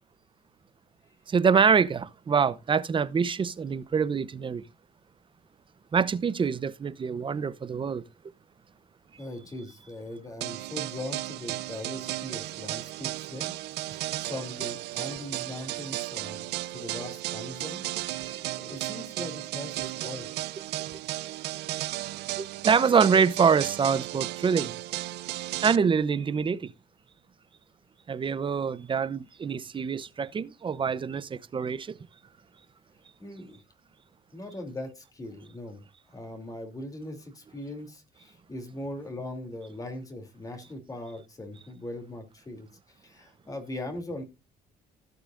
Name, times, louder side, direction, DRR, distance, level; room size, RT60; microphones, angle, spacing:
voice 1, 1.3-4.6 5.9-8.0 18.1-18.4 22.4-24.8 25.6-26.7 28.1-32.0, right 6 dB, 30° right, 0.7 m, -25 dB
voice 2, 9.2-13.5 13.8-17.8 18.3-20.3 33.2-33.6 34.3-35.8 36.1-44.2, left 1 dB, 20° left, 3.0 m, -40 dB
sound 1, 10.4-25.8, right 16 dB, 80° right, 0.5 m, -34 dB
16.5 x 6.9 x 2.5 m
cardioid pair, 110°, 17 cm